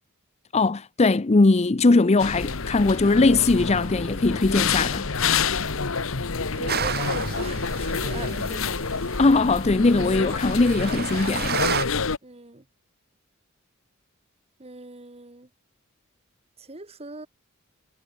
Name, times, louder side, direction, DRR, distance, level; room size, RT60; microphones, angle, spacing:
voice 1, 0.5-5.1 9.2-11.6, left 3 dB, 30° left, 0.6 m, -20 dB
sound 1, 2.2-12.2, left 5 dB, 65° left, 1.2 m, -28 dB
voice 2, 6.5-8.9 12.2-12.7 14.6-15.5 16.6-17.3, right 2 dB, 30° right, 1.8 m, -40 dB
sound 2, 6.7-11.8, right 7 dB, 45° right, 2.0 m, -32 dB
head